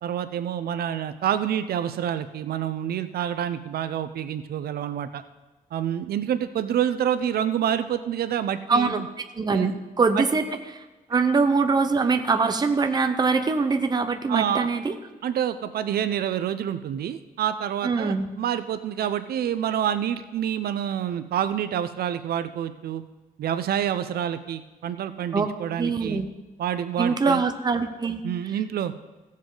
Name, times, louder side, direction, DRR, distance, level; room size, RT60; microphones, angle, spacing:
voice 1, 0.0-5.2 5.7-9.1 9.5-9.8 10.1-10.3 14.3-14.7 15.2-23.0 23.4-26.2 26.6-27.4 28.2-28.9, right 9 dB, 85° right, 12 dB, 0.6 m, -27 dB
voice 2, 8.7-9.0 9.4-10.4 11.1-14.9 17.8-18.3 25.3-25.5 25.8-26.3 27.0-28.2, right 4 dB, 25° right, 7 dB, 0.8 m, -23 dB
16.0 x 7.4 x 3.9 m, 1.2 s
wide cardioid pair, 155°, 16 cm